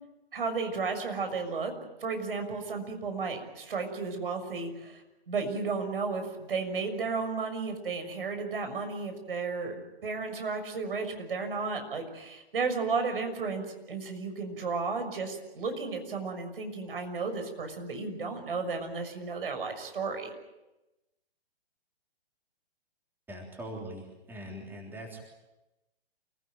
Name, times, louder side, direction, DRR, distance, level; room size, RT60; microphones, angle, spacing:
voice 1, 0.3-1.7 2.0-5.0 5.3-9.8 10.0-20.3, right 4 dB, 65° right, 6 dB, 6.4 m, -33 dB
voice 2, 23.3-25.2, right 1 dB, 5° right, 1 dB, 3.4 m, -42 dB
28.5 x 17.0 x 9.1 m, 1.0 s
figure-of-eight pair, 130°, 30 cm